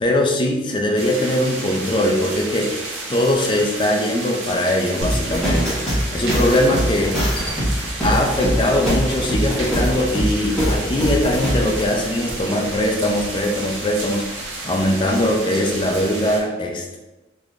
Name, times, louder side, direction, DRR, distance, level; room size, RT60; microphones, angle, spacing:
voice 1, 0.0-2.7 3.1-5.8 6.1-7.2 8.0-14.2 14.6-17.0, left 1 dB, 25° left, 1 dB, 0.4 m, -21 dB
sound 1, 1.0-16.4, right 2 dB, 85° right, 0.9 m, -31 dB
sound 2, 5.0-11.8, equal, ahead, 1.3 m, -22 dB
3.5 x 3.0 x 2.4 m, 1.1 s
head